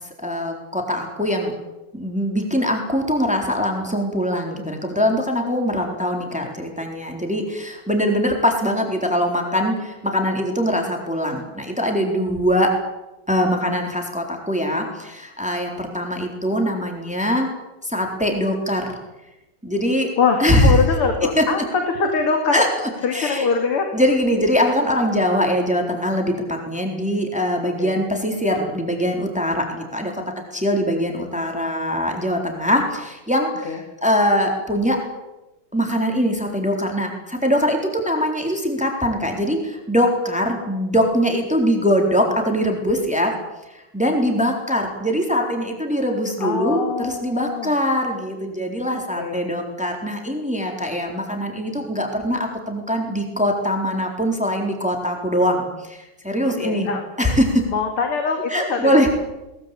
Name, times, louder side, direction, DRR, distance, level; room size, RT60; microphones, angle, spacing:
voice 1, 0.2-1.5 1.9-12.7 13.3-17.5 17.8-19.0 19.6-20.1 20.4-20.7 21.4-21.5 22.5-22.7 23.1-23.5 23.9-30.1 30.5-35.0 35.7-43.3 43.9-56.9 57.2-57.6 58.5-59.1, equal, 5° right, 2 dB, 3.9 m, -22 dB
voice 2, 20.2-22.6 23.0-23.9 27.8-28.0 33.6-33.8 46.4-47.7 48.9-49.4 56.4-57.0 57.7-59.1, left 5 dB, 80° left, 4 dB, 3.3 m, -23 dB
21.5 x 20.5 x 8.5 m, 1.0 s
omnidirectional pair, 2.4 m